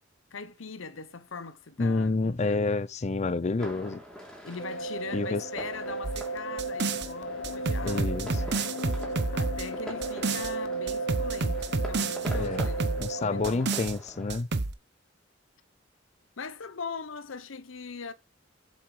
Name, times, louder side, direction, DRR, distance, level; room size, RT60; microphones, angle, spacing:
voice 1, 0.3-2.7 4.4-13.7 16.4-18.1, left 4 dB, 90° left, 0.9 m, -41 dB
voice 2, 1.8-4.0 5.1-5.5 7.8-8.4 12.3-12.7 13.0-14.5, left 3 dB, 35° left, 0.5 m, -28 dB
sound 1, 3.6-14.4, equal, 5° left, 3.2 m, -45 dB
sound 2, 4.6-13.5, right 3 dB, 75° left, 2.1 m, -35 dB
sound 3, 6.0-7.1 7.4-10.5 10.9-13.1 13.4-13.9 14.3-14.7, right 3 dB, 60° right, 0.9 m, -30 dB
7.6 x 7.2 x 4.9 m
head